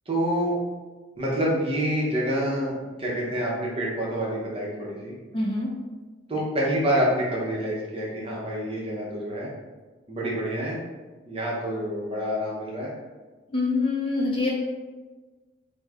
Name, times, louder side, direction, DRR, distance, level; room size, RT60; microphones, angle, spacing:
voice 1, 0.1-0.6 1.2-5.1 6.3-9.5 10.1-10.8 11.2-12.9, equal, 30° right, -4 dB, 0.7 m, -27 dB
voice 2, 5.3-5.7 13.5-14.5, left 3 dB, 25° left, -2 dB, 0.4 m, -25 dB
3.1 x 2.1 x 3.5 m, 1.3 s
head